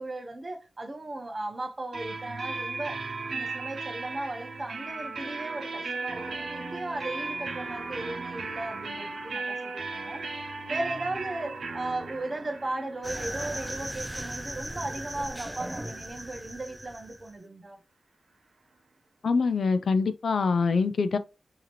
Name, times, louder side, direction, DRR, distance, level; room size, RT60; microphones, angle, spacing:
voice 1, 0.0-3.0 3.3-10.2 10.7-17.8, right 2 dB, 30° right, 0.8 m, -36 dB
sound 1, 1.9-15.5, right 3 dB, 70° right, 0.9 m, -36 dB
sound 2, 13.0-17.3, right 1 dB, 10° right, 0.4 m, -37 dB
voice 2, 19.2-21.2, left 4 dB, 75° left, 0.4 m, -24 dB
4.8 x 2.9 x 3.1 m
wide cardioid pair, 115°, 0 cm